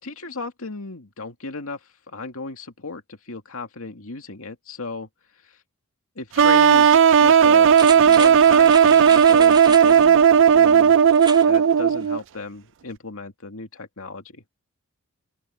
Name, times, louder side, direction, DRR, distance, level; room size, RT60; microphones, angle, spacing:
voice 1, 0.0-1.8 2.1-5.1 5.5-5.6 6.2-10.2 10.5-11.0 11.5-14.4, left 3 dB, 70° left, 2.5 m, -35 dB
sound 1, 6.4-12.2, right 7 dB, 60° right, 0.5 m, -14 dB
sound 2, 7.7-10.1 11.1-11.5 11.9-12.0, right 4 dB, 20° right, 3.2 m, -33 dB
open air
head